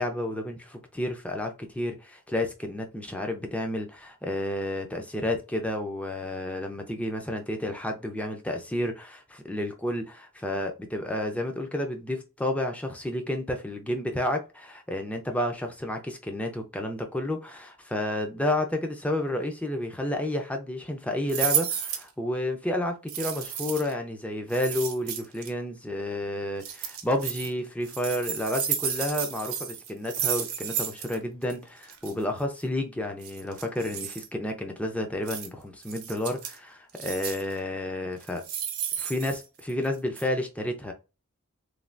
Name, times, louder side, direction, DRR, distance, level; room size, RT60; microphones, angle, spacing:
voice 1, 0.0-38.4 39.0-40.9, left 1 dB, 5° left, 0.4 m, -31 dB
sound 1, 21.3-22.1 23.1-23.9 24.5-25.5 26.6-27.5 27.8-31.2 31.4-31.5 31.8-32.1 33.2-34.3 35.3-35.5 35.8-36.6 36.9-37.5 38.2-39.9 40.1-40.2, right 9 dB, 85° right, 0.7 m, -32 dB
3.2 x 2.3 x 2.5 m
head